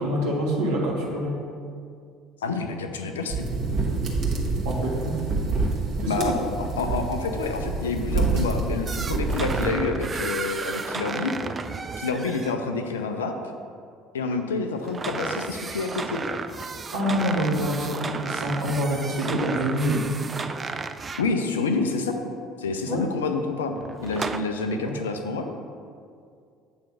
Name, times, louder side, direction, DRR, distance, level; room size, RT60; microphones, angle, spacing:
voice 1, 0.0-1.3 4.6-5.2 6.0-6.3 16.9-20.0 22.9-23.0 24.7-24.9, right 1 dB, 65° right, -4 dB, 1.5 m, -26 dB
voice 2, 2.4-3.5 6.1-11.3 12.0-13.3 14.1-16.2 21.2-22.2 22.6-25.5, left 4 dB, 75° left, 6 dB, 0.5 m, -28 dB
sound 1, 3.3-9.7, right 3 dB, 45° right, 1.2 m, -27 dB
sound 2, 8.9-12.5 14.8-21.3 23.8-24.4, right 4 dB, 25° right, 0.3 m, -33 dB
8.5 x 3.2 x 5.8 m, 2.3 s
figure-of-eight pair, 60°, 0 cm